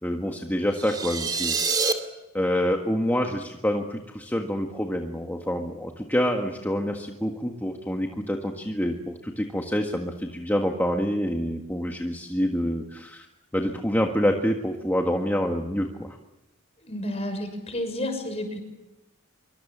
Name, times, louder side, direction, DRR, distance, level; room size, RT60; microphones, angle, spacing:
voice 1, 0.0-1.9 2.3-13.2 13.5-16.2, equal, 10° left, 2 dB, 1.7 m, -27 dB
sound 1, 0.7-1.9, right 4 dB, 20° right, 2.5 m, -26 dB
voice 2, 16.8-18.6, left 1 dB, 30° left, 6 dB, 6.2 m, -31 dB
26.0 x 24.5 x 7.5 m, 1.0 s
head